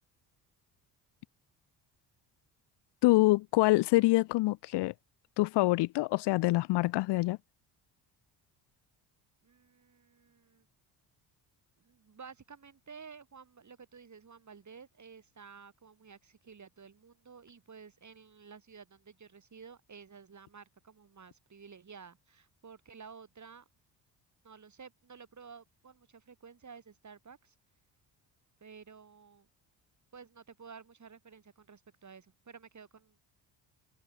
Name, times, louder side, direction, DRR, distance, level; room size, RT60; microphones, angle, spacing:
voice 1, 3.0-4.9 5.4-7.4, left 19 dB, 65° left, 0.6 m, -25 dB
voice 2, 9.4-10.6 11.8-23.7 24.4-27.5 28.6-29.5 30.1-33.2, right 6 dB, 40° right, 6.5 m, -52 dB
supercardioid pair, 65°, 45 cm